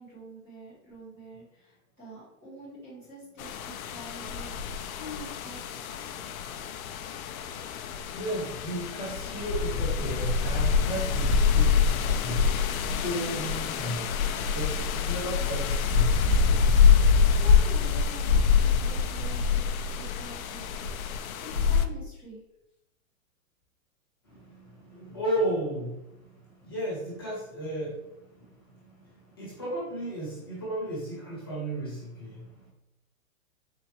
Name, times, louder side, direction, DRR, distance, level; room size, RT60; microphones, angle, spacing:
voice 1, 0.0-4.5 5.0-5.9 17.4-19.6 19.9-20.7 21.4-22.4, equal, 10° right, -9 dB, 1.0 m, -45 dB
sound 1, 3.4-21.9, left 6 dB, 75° left, 0.5 m, -25 dB
voice 2, 8.2-12.4 12.8-14.1 14.5-16.2 16.7-16.8 24.2-32.7, right 1 dB, 15° left, -8 dB, 0.5 m, -34 dB
4.4 x 2.8 x 3.0 m, 0.87 s
hypercardioid pair, 180°, 43 cm